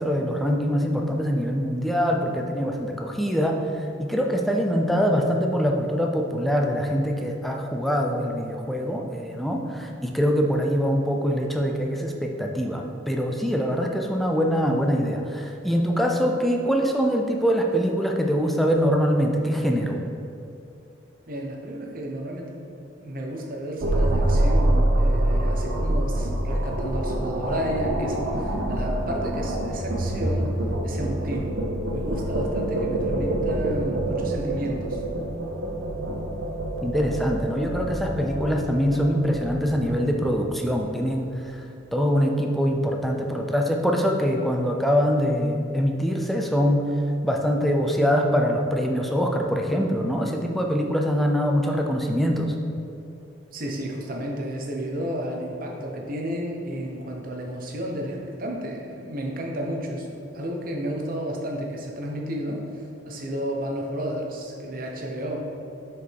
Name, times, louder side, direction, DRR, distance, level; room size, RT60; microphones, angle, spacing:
voice 1, 0.0-3.6 4.0-20.0 36.8-41.6 41.9-46.9 47.2-52.5, equal, ahead, 1 dB, 0.5 m, -24 dB
voice 2, 21.3-22.6 23.0-30.5 30.8-31.6 31.9-35.0 53.5-60.1 60.3-62.6 63.0-65.5, equal, 50° right, 0 dB, 1.0 m, -32 dB
sound 1, 23.8-41.0, right 1 dB, 85° right, 0.9 m, -26 dB
6.6 x 5.1 x 4.6 m, 2.6 s
head